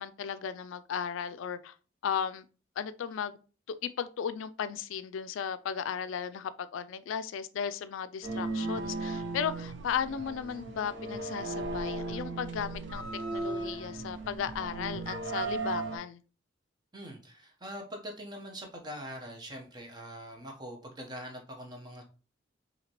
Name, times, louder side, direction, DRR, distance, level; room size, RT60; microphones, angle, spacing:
voice 1, 0.0-1.7 2.0-2.5 2.8-3.4 3.7-13.0 13.3-16.2, left 7 dB, 85° left, 0.3 m, -35 dB
sound 1, 8.2-16.0, right 3 dB, 70° right, 0.8 m, -36 dB
voice 2, 16.9-22.0, equal, 20° right, 0.9 m, -43 dB
5.8 x 2.8 x 2.9 m
head